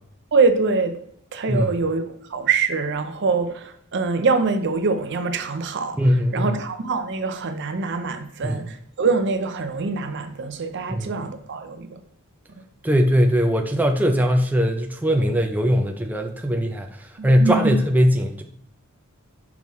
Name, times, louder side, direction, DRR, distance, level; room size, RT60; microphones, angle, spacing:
voice 1, 0.3-1.0 1.3-6.0 6.3-12.0 17.2-17.7, right 4 dB, 55° right, 0.6 m, -24 dB
voice 2, 6.0-6.6 8.4-8.7 10.9-11.1 12.8-18.4, equal, 10° right, 0.4 m, -20 dB
6.0 x 5.4 x 3.1 m
head